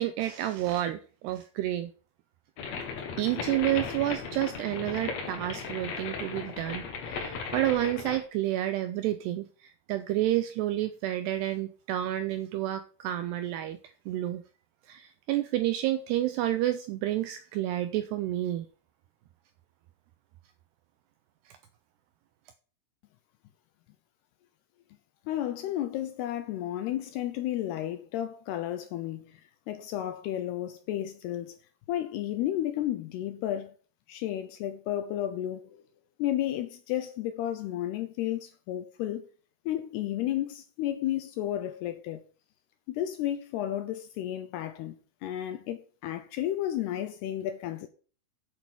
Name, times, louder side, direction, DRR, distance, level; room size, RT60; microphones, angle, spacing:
voice 1, 0.0-1.9 3.2-13.8 14.1-14.4 14.9-18.7, right 14 dB, 90° right, 2.4 m, -30 dB
sound 1, 2.6-8.2, left 5 dB, 55° left, 2.0 m, -36 dB
voice 2, 25.3-29.4 29.7-31.6 31.9-33.7 34.1-35.8 36.2-39.3 39.7-42.2 42.9-45.0 45.2-47.9, left 12 dB, 75° left, 2.5 m, -32 dB
8.5 x 8.4 x 6.1 m
omnidirectional pair, 5.5 m